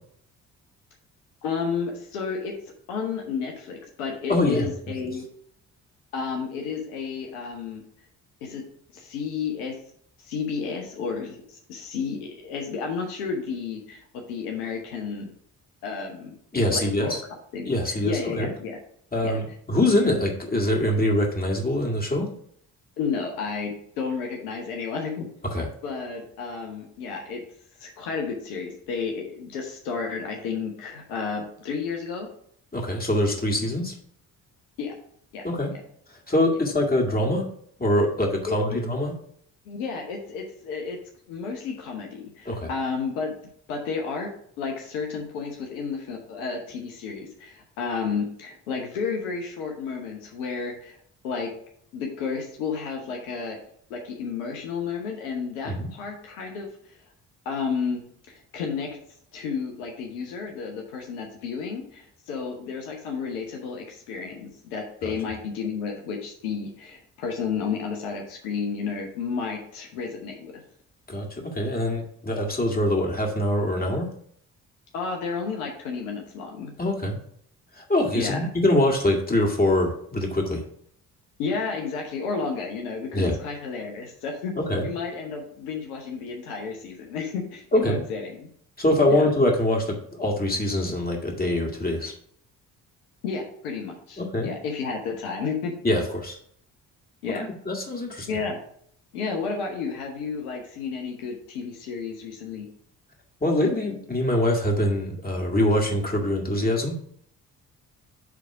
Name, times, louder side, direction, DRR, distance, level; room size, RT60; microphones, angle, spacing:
voice 1, 1.4-2.5 2.9-5.3 6.1-7.8 8.4-8.6 8.9-9.7 10.2-15.3 15.8-16.4 16.7-17.2 17.5-18.8 19.2-19.4 23.0-25.3 25.8-27.4 27.8-32.3 34.8-34.9 35.3-35.4 35.7-35.8 38.5-38.8 39.6-41.0 41.3-43.3 43.7-44.3 44.6-51.0 51.2-51.5 51.9-53.6 53.9-57.0 57.4-59.0 59.3-70.6 74.9-76.7 78.1-78.5 81.4-84.5 84.8-88.5 89.1-89.2 93.2-95.7 97.2-97.5 98.3-98.6 99.1-102.7, left 5 dB, 80° left, 2 dB, 1.0 m, -32 dB
voice 2, 4.3-4.7 16.5-17.2 17.7-18.5 19.1-22.3 25.5-25.7 32.7-33.9 35.4-35.7 36.3-37.4 37.8-39.1 42.5-42.7 55.7-55.9 65.0-65.1 71.1-74.1 76.8-77.2 77.7-80.6 83.1-83.4 84.6-84.9 87.7-88.0 88.8-92.1 94.2-94.5 95.8-96.4 97.4-98.3 103.4-106.9, left 1 dB, 20° left, 0 dB, 2.1 m, -24 dB
8.1 x 3.5 x 4.9 m, 0.65 s
hypercardioid pair, 40°, 44 cm